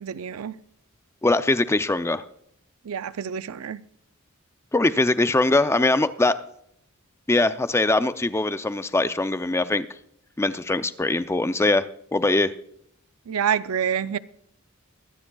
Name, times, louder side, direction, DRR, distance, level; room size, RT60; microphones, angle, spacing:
voice 1, 0.0-0.6 2.9-3.8 13.3-14.2, right 8 dB, 80° right, 0.5 m, -27 dB
voice 2, 1.2-2.2 4.7-6.3 7.3-9.9 10.4-11.8 12.1-12.5, left 2 dB, 10° left, 0.4 m, -22 dB
23.5 x 9.8 x 2.3 m
head